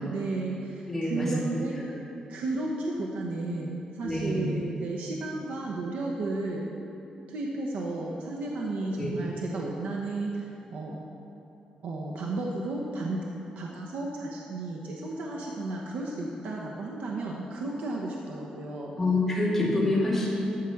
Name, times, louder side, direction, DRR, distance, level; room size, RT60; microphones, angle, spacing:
voice 1, 0.1-1.8 2.3-6.7 7.3-11.0 11.8-13.2 13.6-18.9, right 2 dB, 75° right, -2 dB, 1.0 m, -33 dB
voice 2, 0.9-1.6 4.0-4.4 9.0-9.2 19.0-20.3, left 2 dB, 10° left, -7 dB, 2.3 m, -26 dB
12.5 x 4.9 x 7.1 m, 2.9 s
wide cardioid pair, 160°, 2 cm